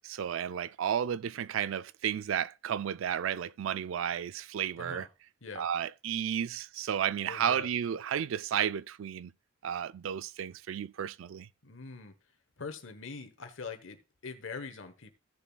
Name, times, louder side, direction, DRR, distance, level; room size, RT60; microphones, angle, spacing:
voice 1, 0.0-5.1 5.6-9.3 9.6-11.5, right 9 dB, 75° right, 0.3 m, -32 dB
voice 2, 4.8-5.1 5.4-5.7 7.2-7.7 11.6-12.1 12.6-15.1, left 4 dB, 70° left, 1.1 m, -43 dB
15.5 x 7.0 x 2.3 m
head